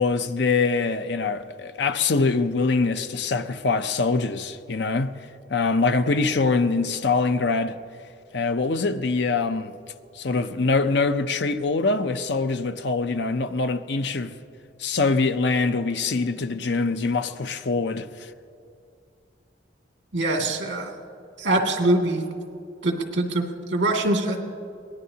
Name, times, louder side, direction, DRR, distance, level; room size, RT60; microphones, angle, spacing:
voice 1, 0.0-5.1 5.5-7.8 8.3-9.7 10.1-14.3 14.8-18.3, left 3 dB, 65° left, 0.6 m, -24 dB
voice 2, 20.1-20.9 21.4-22.2 22.8-24.4, right 2 dB, 75° right, 2.3 m, -23 dB
23.5 x 19.0 x 2.8 m
head